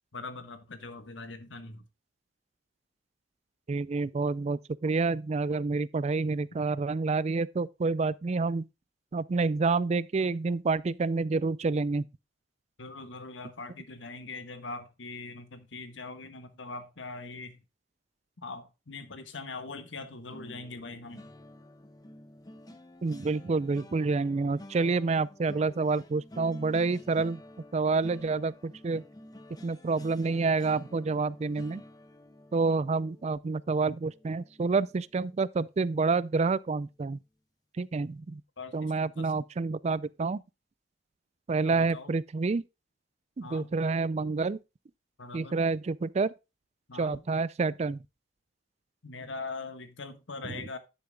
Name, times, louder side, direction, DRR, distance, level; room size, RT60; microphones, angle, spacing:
voice 1, 0.1-1.9 12.8-17.6 18.4-21.3 38.6-39.4 41.6-42.2 43.4-43.7 45.2-45.6 46.9-47.2 49.0-50.8, left 3 dB, 80° left, 1.4 m, -42 dB
voice 2, 3.7-8.7 9.1-12.1 23.0-27.4 27.7-29.0 29.6-31.8 32.5-37.2 37.8-38.4 38.7-40.4 41.5-42.6 43.4-44.6 45.3-46.3 47.0-48.0 50.4-50.5, right 4 dB, 35° right, 0.4 m, -28 dB
sound 1, 20.3-35.4 35.8-36.1 36.4-36.6, left 1 dB, 20° left, 0.9 m, -50 dB
11.5 x 6.9 x 2.3 m
head